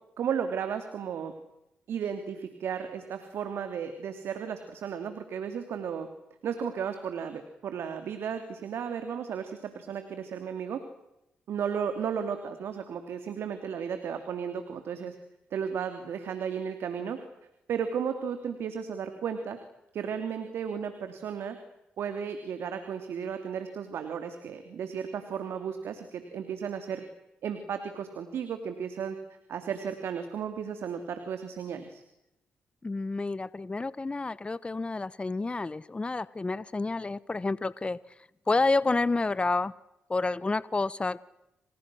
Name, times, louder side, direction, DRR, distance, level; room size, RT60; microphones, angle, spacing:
voice 1, 0.2-1.3 1.9-6.1 6.4-10.8 11.5-15.2 15.5-17.2 17.7-19.6 19.9-21.6 22.0-27.0 27.4-29.2 29.5-32.0, right 7 dB, 70° right, 7 dB, 2.9 m, -34 dB
voice 2, 32.8-38.0 38.5-39.7 40.1-41.2, left 3 dB, 25° left, 19 dB, 1.0 m, -29 dB
28.0 x 28.0 x 6.3 m, 0.87 s
supercardioid pair, 50°, 4 cm